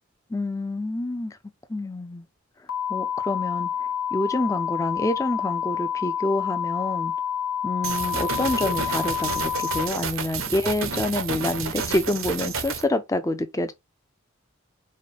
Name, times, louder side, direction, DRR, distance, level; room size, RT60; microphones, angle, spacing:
voice 1, 0.3-1.4 1.7-2.3 2.9-3.7 4.1-7.1 7.6-13.7, left 1 dB, 15° left, 0.5 m, -27 dB
sound 1, 2.7-9.9, left 9 dB, 90° left, 0.7 m, -28 dB
sound 2, 7.8-12.8, right 6 dB, 70° right, 0.8 m, -30 dB
5.0 x 2.2 x 4.0 m
head